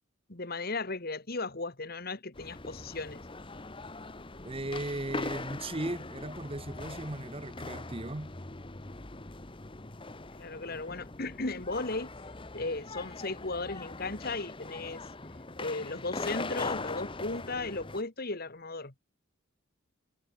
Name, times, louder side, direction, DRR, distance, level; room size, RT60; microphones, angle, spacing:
voice 1, 0.3-3.3 10.4-12.1 12.5-15.0 15.6-19.0, left 3 dB, 45° left, 2.0 m, -36 dB
sound 1, 2.3-18.0, left 3 dB, 25° left, 1.2 m, -41 dB
voice 2, 4.4-8.3, right 1 dB, 25° right, 1.2 m, -37 dB
head